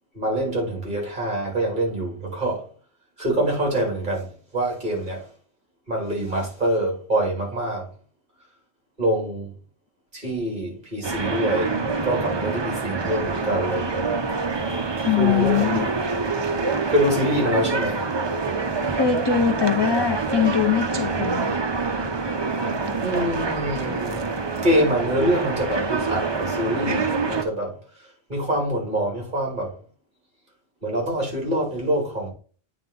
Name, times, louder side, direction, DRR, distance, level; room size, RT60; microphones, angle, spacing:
voice 1, 0.1-2.6 3.2-5.2 5.9-7.9 9.0-9.5 10.1-14.1 15.2-15.8 16.9-18.0 23.0-24.3 24.6-27.8 28.3-29.7 30.8-32.3, right 1 dB, 50° right, 2.7 m, -25 dB
sound 1, 11.0-27.4, right 4 dB, 30° right, 0.5 m, -26 dB
voice 2, 15.0-15.9 19.0-21.6, left 8 dB, 40° left, 0.4 m, -22 dB
9.0 x 3.4 x 3.8 m
omnidirectional pair, 1.1 m